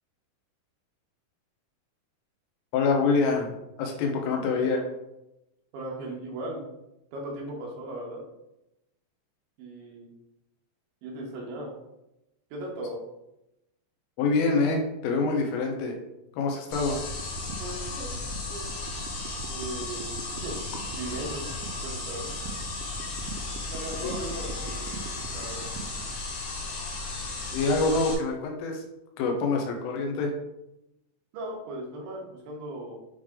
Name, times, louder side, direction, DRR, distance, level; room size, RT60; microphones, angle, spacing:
voice 1, 2.7-3.5 3.8-4.8 14.2-16.0 16.3-17.0 24.0-24.2 27.5-28.8 29.2-30.3, left 3 dB, 80° left, 2 dB, 3.5 m, -25 dB
voice 2, 5.7-6.6 7.1-8.2 9.6-10.1 11.0-11.7 12.5-13.0 17.6-18.2 18.5-18.7 19.5-20.6 20.9-21.5 21.8-22.3 23.7-25.0 25.3-25.7 27.8-28.0 31.3-33.0, right 1 dB, 70° right, -2 dB, 3.3 m, -37 dB
sound 1, 16.7-28.1, left 3 dB, 60° left, 3.2 m, -35 dB
sound 2, 17.0-26.2, right 6 dB, 90° right, 2.6 m, -43 dB
9.0 x 3.4 x 3.7 m, 0.89 s
omnidirectional pair, 5.9 m